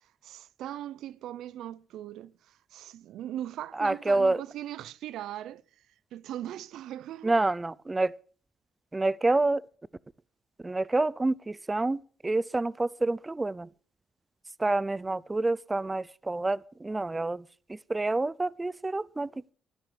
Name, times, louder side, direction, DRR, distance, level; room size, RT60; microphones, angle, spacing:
voice 1, 0.0-5.6 6.1-7.4, right 12 dB, 80° right, 0.6 m, -40 dB
voice 2, 3.8-4.4 7.2-8.1 8.9-9.6 10.6-13.7 14.6-17.4 17.7-19.3, right 2 dB, 20° right, 0.6 m, -28 dB
15.0 x 12.5 x 5.1 m
cardioid pair, 90°, 0 cm